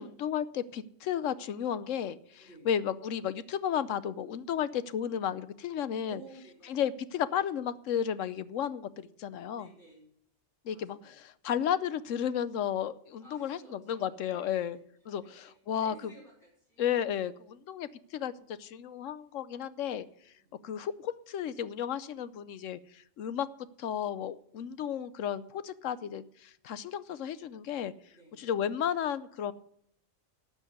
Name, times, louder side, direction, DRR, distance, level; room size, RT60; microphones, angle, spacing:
voice 1, 0.0-6.2 6.7-9.7 10.6-14.8 15.1-16.1 16.8-18.3 18.6-20.1 20.6-23.5 23.8-27.9 28.4-29.5, left 9 dB, 75° left, 15 dB, 1.1 m, -33 dB
voice 2, 6.0-6.8 9.5-10.1 10.7-11.1 13.2-14.8 15.2-16.9 20.3-20.5 28.1-28.4, right 2 dB, 45° left, -3 dB, 5.8 m, -55 dB
12.5 x 7.4 x 7.9 m, 0.70 s
omnidirectional pair, 1.3 m